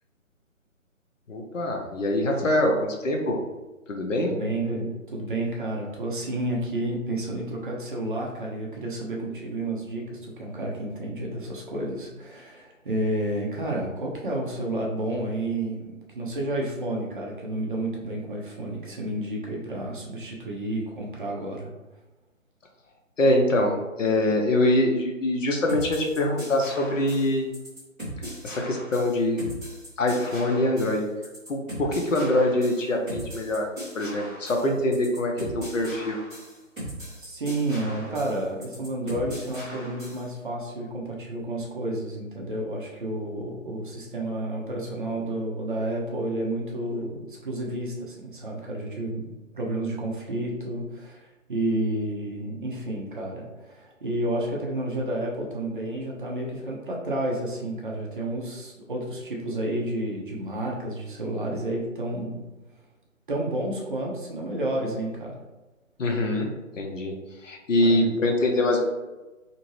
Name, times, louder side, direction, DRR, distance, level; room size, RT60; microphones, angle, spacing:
voice 1, 1.3-3.4 3.9-4.4 23.2-27.5 28.4-29.4 30.0-31.1 31.5-33.7 33.9-36.2 66.0-67.2 67.4-68.8, left 1 dB, 70° left, 2 dB, 0.8 m, -24 dB
voice 2, 4.2-21.7 37.2-51.2 51.5-62.4 63.3-65.4 67.8-68.1, right 1 dB, 40° right, -2 dB, 0.6 m, -30 dB
sound 1, 25.7-40.3, equal, 5° left, 0.9 m, -39 dB
2.7 x 2.6 x 3.1 m, 1.1 s
figure-of-eight pair, 155°, 40 cm